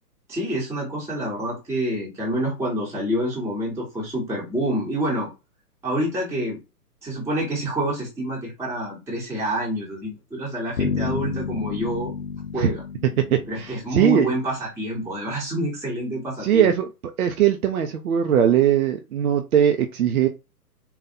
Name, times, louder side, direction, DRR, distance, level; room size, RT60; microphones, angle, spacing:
voice 1, 0.3-5.3 5.8-6.6 7.0-12.1 12.5-12.8 13.5-16.7, right 1 dB, 5° right, -4 dB, 1.0 m, -27 dB
sound 1, 10.8-14.5, left 6 dB, 60° left, 0.8 m, -31 dB
voice 2, 13.3-14.3 16.4-16.9 17.2-20.3, right 9 dB, 65° right, 6 dB, 0.7 m, -20 dB
4.1 x 2.3 x 4.2 m, 0.27 s
hypercardioid pair, 135°, 48 cm